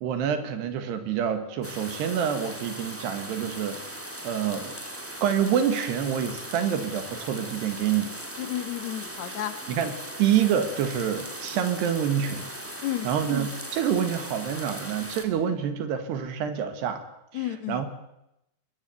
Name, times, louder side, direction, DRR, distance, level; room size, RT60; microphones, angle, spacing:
voice 1, 0.0-3.8 4.2-4.7 5.2-8.1 9.7-9.9 10.2-12.5 12.8-17.0 17.3-17.9, right 8 dB, 80° right, 9 dB, 3.7 m, -27 dB
sound 1, 1.6-15.2, right 1 dB, 5° right, 1.0 m, -39 dB
voice 2, 8.4-9.6 12.8-13.1 17.3-17.9, left 13 dB, 60° left, 10 dB, 2.1 m, -32 dB
22.0 x 16.5 x 9.3 m, 0.85 s
omnidirectional pair, 4.8 m